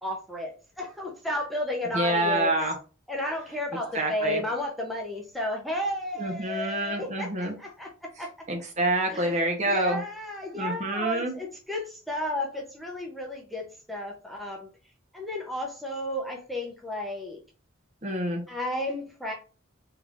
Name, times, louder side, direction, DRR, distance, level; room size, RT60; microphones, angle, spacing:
voice 1, 0.0-2.5 3.1-8.3 9.1-14.7 15.1-17.4 18.5-19.3, left 1 dB, ahead, -1 dB, 0.6 m, -33 dB
voice 2, 1.9-2.7 3.9-4.4 6.2-7.5 8.5-10.0 10.5-11.3 18.0-18.4, right 1 dB, 35° right, 2 dB, 0.8 m, -27 dB
3.4 x 3.3 x 2.4 m, 0.35 s
head